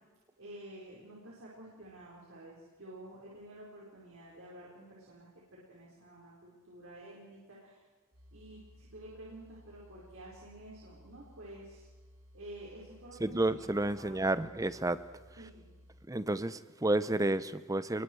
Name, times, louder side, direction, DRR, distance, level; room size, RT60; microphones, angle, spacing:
voice 1, 0.4-7.8 8.3-11.9 12.3-14.1 15.4-15.7, right 1 dB, 65° right, -5 dB, 4.8 m, -50 dB
sound 1, 8.1-16.1, equal, 80° right, 3.5 m, -58 dB
voice 2, 13.2-15.0 16.1-18.0, right 2 dB, 15° right, 14 dB, 0.6 m, -31 dB
30.0 x 21.5 x 4.7 m, 1.4 s
head